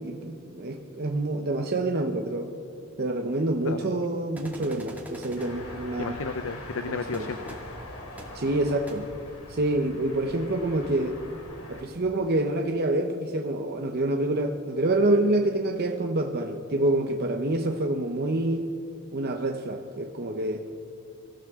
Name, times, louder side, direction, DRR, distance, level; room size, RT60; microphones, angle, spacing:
voice 1, 0.0-2.5 3.0-6.2 6.9-7.3 8.3-9.1 9.5-11.2 11.7-18.7 19.1-20.6, right 2 dB, 45° right, 3 dB, 0.8 m, -27 dB
sound 1, 4.4-5.5 7.1-7.2 7.5-7.6 8.2-8.3 8.9-9.0, right 1 dB, 10° right, 2.1 m, -43 dB
sound 2, 5.4-11.8, left 1 dB, 85° left, 2.9 m, -43 dB
voice 2, 6.0-7.6, left 4 dB, 65° left, 9 dB, 0.6 m, -33 dB
25.0 x 15.0 x 3.7 m, 2.5 s
head